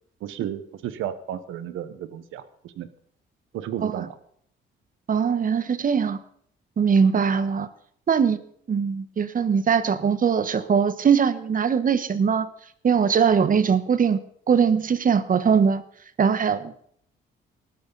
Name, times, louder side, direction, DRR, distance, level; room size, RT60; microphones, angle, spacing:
voice 1, 0.2-2.9 3.5-4.2, right 10 dB, 85° right, 13 dB, 1.3 m, -33 dB
voice 2, 5.1-6.2 6.8-7.7 8.1-8.4 8.7-12.5 12.8-14.2 14.5-15.8 16.2-16.7, right 6 dB, 45° right, 13 dB, 1.3 m, -21 dB
19.0 x 12.5 x 4.1 m, 0.65 s
cardioid pair, 90°, 20 cm